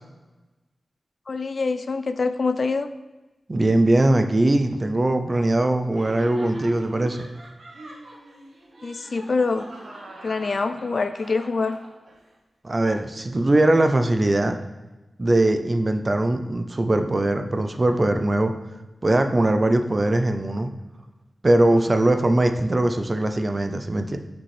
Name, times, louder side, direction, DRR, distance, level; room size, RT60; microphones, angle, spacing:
voice 1, 1.3-2.9 8.8-9.7 10.2-11.8, left 4 dB, 45° left, 10 dB, 0.3 m, -25 dB
voice 2, 3.5-7.3 12.6-14.6 15.2-18.5 19.0-20.7 21.4-24.2, right 1 dB, 25° right, 7 dB, 0.4 m, -21 dB
Laughter, 5.9-12.3, right 1 dB, 55° right, 0.9 m, -42 dB
5.9 x 5.1 x 3.3 m, 1.1 s
wide cardioid pair, 150°, 0 cm